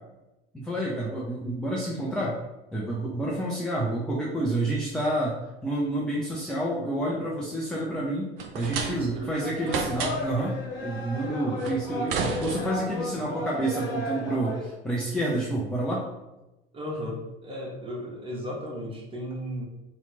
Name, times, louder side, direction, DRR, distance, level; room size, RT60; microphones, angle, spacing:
voice 1, 0.5-2.3 2.7-5.3 5.6-16.0, right 1 dB, 5° left, -5 dB, 0.4 m, -29 dB
sound 1, 8.4-9.3 9.7-10.4 11.6-13.0, right 5 dB, 60° right, 0.5 m, -31 dB
voice 2, 8.9-9.4 11.2-11.6 16.7-19.6, equal, 15° right, -2 dB, 0.9 m, -35 dB
sound 2, 9.4-14.8, left 1 dB, 60° left, 0.7 m, -33 dB
2.8 x 2.1 x 3.7 m, 1.0 s
figure-of-eight pair, 75°, 31 cm